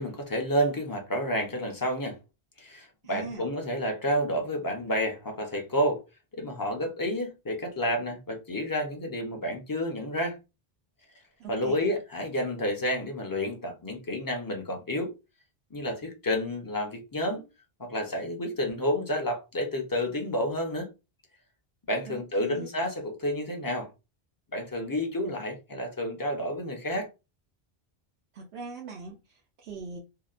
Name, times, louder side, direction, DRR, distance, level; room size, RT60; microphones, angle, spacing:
voice 1, 0.0-2.1 2.6-6.0 6.3-10.4 11.5-15.1 15.7-17.4 17.8-20.9 21.9-23.9 24.5-27.1, equal, 30° left, 0.5 m, -30 dB
voice 2, 3.0-3.5 11.4-11.9 22.1-22.7 28.3-30.0, right 4 dB, 80° right, 0.8 m, -41 dB
2.7 x 2.1 x 2.4 m
omnidirectional pair, 1.1 m